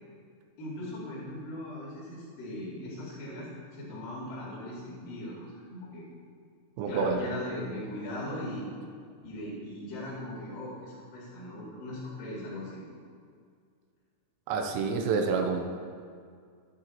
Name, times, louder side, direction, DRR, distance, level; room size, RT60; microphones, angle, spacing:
voice 1, 0.6-6.1 6.9-8.7 9.2-12.8, left 1 dB, 50° left, -10 dB, 3.8 m, -39 dB
voice 2, 6.8-7.2 14.5-15.7, right 4 dB, 80° right, 4 dB, 3.3 m, -28 dB
12.5 x 10.5 x 2.9 m, 2.2 s
omnidirectional pair, 5.9 m